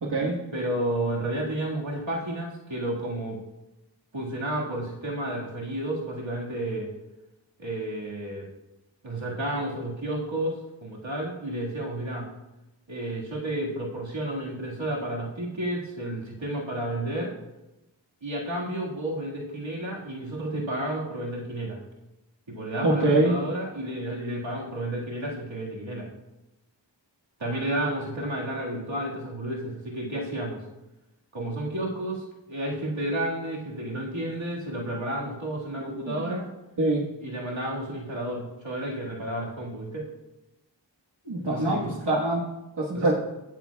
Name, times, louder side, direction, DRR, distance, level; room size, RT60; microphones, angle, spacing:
voice 1, 0.0-0.4 22.8-23.3 35.7-36.4 36.8-37.1 41.2-42.4 42.8-43.1, right 2 dB, 60° right, -3 dB, 1.4 m, -25 dB
voice 2, 0.5-3.4 4.1-6.9 7.6-8.5 9.0-12.3 12.9-17.3 18.2-21.8 22.5-26.1 27.4-30.6 31.3-36.5 37.2-40.1 41.4-41.9 42.9-43.1, right 1 dB, 85° right, -4 dB, 1.9 m, -31 dB
16.0 x 7.4 x 2.3 m, 0.96 s
wide cardioid pair, 45°, 45 cm